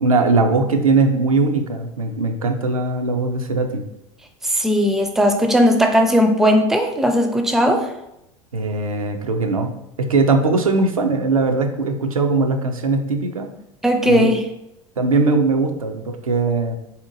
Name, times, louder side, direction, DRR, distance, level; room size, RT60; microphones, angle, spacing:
voice 1, 0.0-3.8 8.5-9.7 10.0-13.5 14.0-14.3 15.0-16.8, right 3 dB, 85° right, 4 dB, 0.4 m, -20 dB
voice 2, 4.4-7.9 13.8-14.4, equal, ahead, 5 dB, 0.4 m, -17 dB
3.6 x 2.8 x 2.5 m, 0.85 s
figure-of-eight pair, 80°, 17 cm